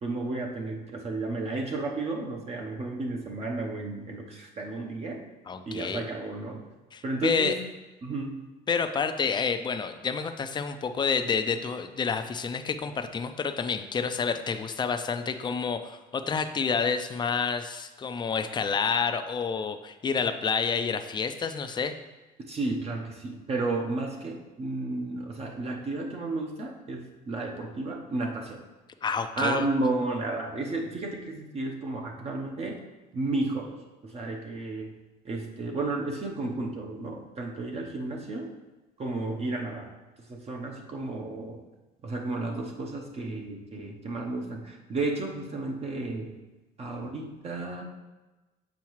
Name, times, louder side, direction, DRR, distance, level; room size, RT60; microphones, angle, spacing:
voice 1, 0.0-5.2 5.7-6.7 7.0-7.5 8.0-8.4 22.5-28.6 29.4-32.8 33.1-35.0 35.2-38.5 39.0-39.9 40.3-41.6 42.0-46.3 46.8-47.8, right 2 dB, 35° right, 0 dB, 0.8 m, -32 dB
voice 2, 5.5-6.0 6.9-7.6 8.7-21.9 29.0-29.6, left 5 dB, 25° left, 8 dB, 0.4 m, -29 dB
7.2 x 4.7 x 3.1 m, 1.1 s
cardioid pair, 110°, 17 cm